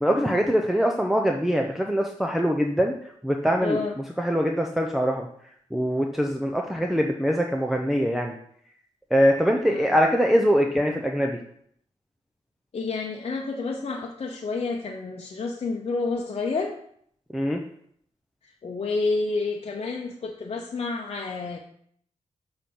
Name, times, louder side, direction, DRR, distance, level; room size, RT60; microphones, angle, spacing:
voice 1, 0.0-3.0 3.2-5.3 5.7-8.3 9.1-11.4 17.3-17.6, equal, ahead, 2 dB, 0.6 m, -23 dB
voice 2, 3.6-4.0 9.7-10.0 12.7-16.8 18.6-21.6, left 3 dB, 55° left, 0 dB, 0.8 m, -29 dB
6.8 x 4.4 x 5.5 m, 0.67 s
cardioid pair, 80°, 12 cm